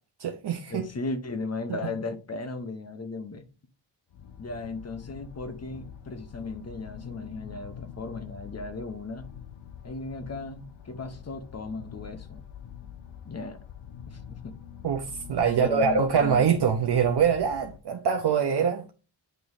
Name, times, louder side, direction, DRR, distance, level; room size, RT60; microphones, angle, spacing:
voice 1, 0.2-0.9 14.8-18.9, right 7 dB, 65° right, 0.8 m, -24 dB
voice 2, 0.7-3.5 4.4-9.3 9.8-12.4 13.2-13.6 14.1-14.6 15.4-16.4, left 3 dB, 35° left, 0.9 m, -36 dB
sound 1, 4.1-17.8, left 8 dB, 90° left, 0.8 m, -45 dB
9.1 x 3.0 x 4.0 m
wide cardioid pair, 125°, 44 cm